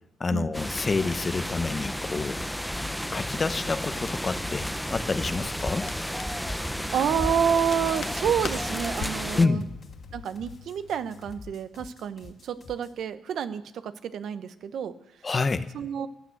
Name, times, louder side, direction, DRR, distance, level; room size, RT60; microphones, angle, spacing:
voice 1, 0.2-2.4 3.1-5.9 9.3-9.7 15.2-15.7, left 4 dB, 30° left, 12 dB, 0.9 m, -28 dB
sound 1, 0.5-9.5, equal, ahead, 0.6 m, -32 dB
sound 2, 1.9-12.9, left 5 dB, 45° left, 2.5 m, -47 dB
Crackle, 3.4-11.4, left 7 dB, 75° left, 1.5 m, -45 dB
voice 2, 6.4-9.6 10.1-14.9 15.7-16.1, right 8 dB, 70° right, 12 dB, 0.9 m, -29 dB
15.5 x 10.5 x 7.9 m, 0.86 s
cardioid pair, 90°, 0 cm